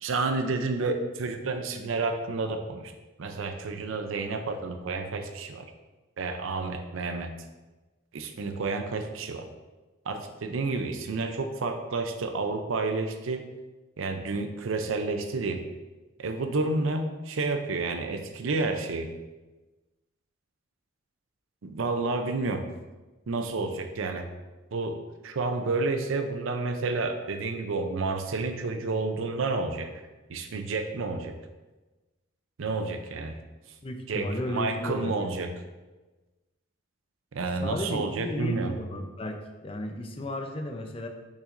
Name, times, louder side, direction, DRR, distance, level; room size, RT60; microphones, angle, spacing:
voice 1, 0.0-2.9 3.2-5.7 6.2-7.3 8.1-9.5 10.1-13.4 14.0-15.6 16.2-19.1 21.6-22.7 23.3-24.3 24.7-25.0 25.2-29.9 30.3-31.3 32.6-33.4 34.1-35.5 37.3-38.7, right 3 dB, 80° right, 7 dB, 0.5 m, -30 dB
voice 2, 33.8-35.4 37.6-41.1, left 1 dB, 30° left, 5 dB, 0.6 m, -34 dB
6.7 x 5.8 x 2.6 m, 1.2 s
head